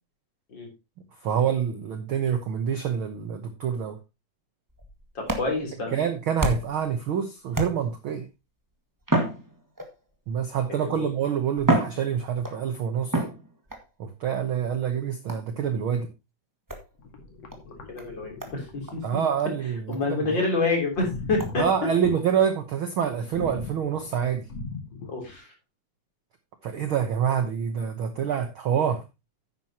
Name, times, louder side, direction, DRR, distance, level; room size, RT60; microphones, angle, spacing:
voice 1, 1.2-4.0 5.9-8.3 10.3-13.2 14.0-16.1 19.0-20.2 21.6-24.5 26.6-29.0, right 8 dB, 60° right, 7 dB, 1.4 m, -26 dB
sound 1, 4.7-6.9 7.5-8.1 9.0-10.1 11.0-11.1 11.6-12.6 13.1-13.8 15.3-15.6 16.7-16.9 17.5-17.6 18.0-18.1 18.4-18.6 18.9-19.0 19.4-19.5 19.9-20.0 20.4-20.5 21.4-21.5, right 1 dB, 10° right, 1.0 m, -29 dB
voice 2, 5.2-6.0 10.7-11.1 17.9-19.2 19.9-21.7 25.1-25.5, left 3 dB, 35° left, 1 dB, 4.0 m, -28 dB
sound 2, 17.0-19.2 20.9-22.2 23.3-25.4, left 3 dB, 55° left, 3.1 m, -39 dB
11.0 x 9.3 x 2.9 m, 0.25 s
omnidirectional pair, 3.6 m